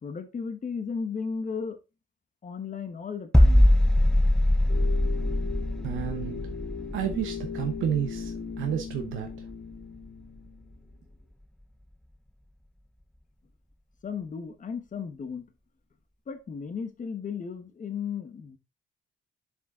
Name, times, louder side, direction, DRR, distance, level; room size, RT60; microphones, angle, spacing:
voice 1, 0.0-1.8 2.4-3.7 14.0-15.5 16.3-18.6, left 6 dB, 40° left, 1.3 m, -35 dB
sound 1, 3.3-9.0 9.3-9.5, left 1 dB, 5° left, 0.6 m, -22 dB
sound 2, 4.7-10.8, left 7 dB, 60° left, 2.3 m, -38 dB
voice 2, 5.8-6.4 6.9-9.3, right 9 dB, 85° right, 1.0 m, -31 dB
6.8 x 4.9 x 3.7 m
cardioid pair, 90°, 20 cm